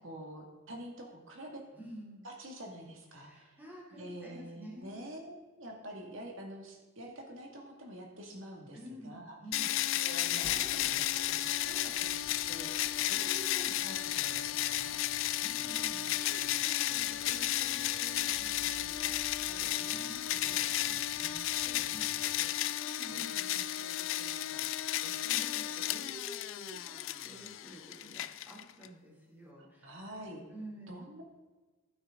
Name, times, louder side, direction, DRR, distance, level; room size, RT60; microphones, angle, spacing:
voice 1, 0.0-1.6 2.2-3.6 4.0-8.8 9.0-9.4 10.0-15.0 21.2-21.3 23.0-23.4 29.6-30.5 30.9-31.2, right 1 dB, 65° right, 1 dB, 2.1 m, -47 dB
voice 2, 1.7-2.2 3.1-4.9 8.7-9.7 15.4-21.0 21.6-29.9 30.5-31.0, equal, 10° right, -5 dB, 2.9 m, -51 dB
sound 1, 9.5-28.9, left 13 dB, 65° left, 0.4 m, -33 dB
sound 2, 10.4-15.2, equal, 20° left, 1.0 m, -56 dB
sound 3, 11.6-22.3, equal, 40° left, 2.7 m, -57 dB
12.0 x 9.4 x 3.8 m, 1.3 s
head